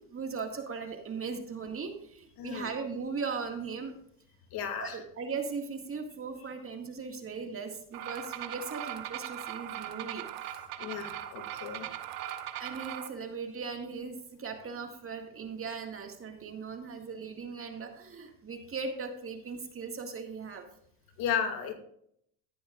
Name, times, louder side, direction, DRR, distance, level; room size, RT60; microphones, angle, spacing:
voice 1, 0.1-3.9 4.8-10.2 12.6-20.6, right 5 dB, 35° right, 4 dB, 2.0 m, -38 dB
voice 2, 2.4-2.7 4.5-5.0 10.8-11.9 21.2-21.7, left 7 dB, 65° left, 4 dB, 2.6 m, -34 dB
sound 1, 7.9-13.1, right 12 dB, 85° right, 1.1 m, -39 dB
14.0 x 10.0 x 2.5 m, 0.69 s
supercardioid pair, 95°, 39 cm